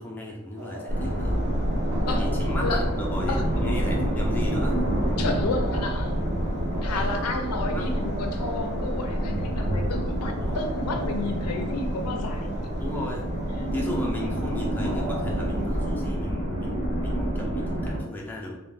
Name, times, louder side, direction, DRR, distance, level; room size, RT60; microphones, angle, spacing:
voice 1, 0.0-1.4 2.1-4.8 6.8-7.2 7.6-7.9 10.4-10.6 12.8-13.3 13.7-18.6, left 1 dB, 10° left, -2 dB, 0.3 m, -35 dB
sound 1, 0.6-16.0, right 1 dB, 90° right, 0.5 m, -40 dB
storm land, 0.9-18.0, equal, 40° right, 0.7 m, -27 dB
voice 2, 5.2-6.1 6.8-12.6, left 3 dB, 85° left, 5 dB, 0.4 m, -31 dB
2.3 x 2.1 x 3.1 m, 1.0 s
head